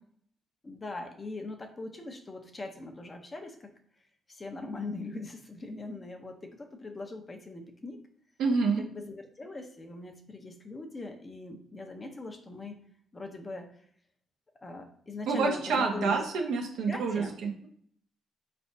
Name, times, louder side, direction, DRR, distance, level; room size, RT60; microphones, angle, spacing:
voice 1, 0.6-3.7 4.3-8.0 8.8-12.8 13.1-13.7 14.6-16.2 16.9-17.4, left 3 dB, 25° left, 4 dB, 0.7 m, -41 dB
voice 2, 8.4-8.8 15.3-17.7, right 4 dB, 85° right, 1 dB, 0.9 m, -28 dB
4.7 x 3.2 x 2.7 m, 0.63 s
cardioid pair, 90°, 0 cm